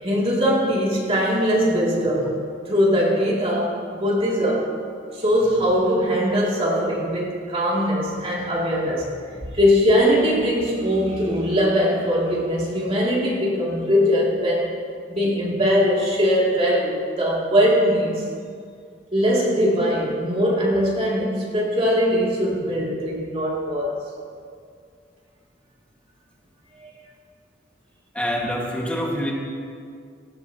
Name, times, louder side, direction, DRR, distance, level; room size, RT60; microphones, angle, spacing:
voice 1, 0.0-2.4 2.7-4.7 5.1-9.1 9.5-14.7 15.1-18.3 19.1-24.0 26.8-26.9, equal, 30° right, -4 dB, 3.0 m, -21 dB
voice 2, 28.1-29.3, equal, 5° left, -2 dB, 2.0 m, -25 dB
18.5 x 16.5 x 3.1 m, 2.2 s
head